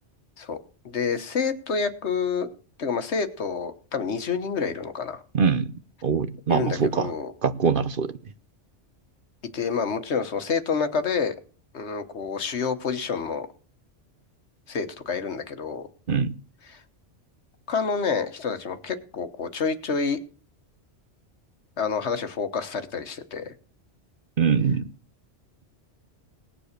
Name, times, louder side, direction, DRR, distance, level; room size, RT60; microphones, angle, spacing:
voice 1, 0.8-2.5 2.8-5.2 6.5-7.3 9.5-11.3 11.7-13.5 14.7-15.9 16.6-16.8 17.7-20.2 21.8-23.5, left 5 dB, 70° left, 9 dB, 1.5 m, -28 dB
voice 2, 5.3-5.7 6.0-7.1 7.4-8.1 16.1-16.3 24.4-24.8, right 6 dB, 50° right, 12 dB, 0.9 m, -23 dB
18.5 x 7.2 x 6.6 m, 0.40 s
omnidirectional pair, 1.2 m